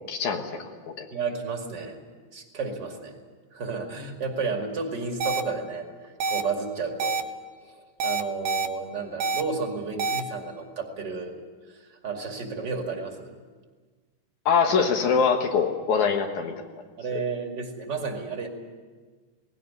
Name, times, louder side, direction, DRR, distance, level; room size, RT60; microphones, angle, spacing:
voice 1, 0.1-1.1 14.5-16.6, left 6 dB, 70° left, 4 dB, 2.8 m, -24 dB
voice 2, 1.1-2.0 2.3-3.2 3.5-7.2 7.6-11.3 11.7-13.4 17.0-18.5, right 4 dB, 35° right, 3 dB, 2.7 m, -32 dB
sound 1, 5.2-5.4 6.2-6.4 7.0-7.2 8.0-8.7 9.2-9.4 10.0-10.2, right 4 dB, 80° right, 2.6 m, -26 dB
19.0 x 16.5 x 9.6 m, 1.4 s
omnidirectional pair, 3.6 m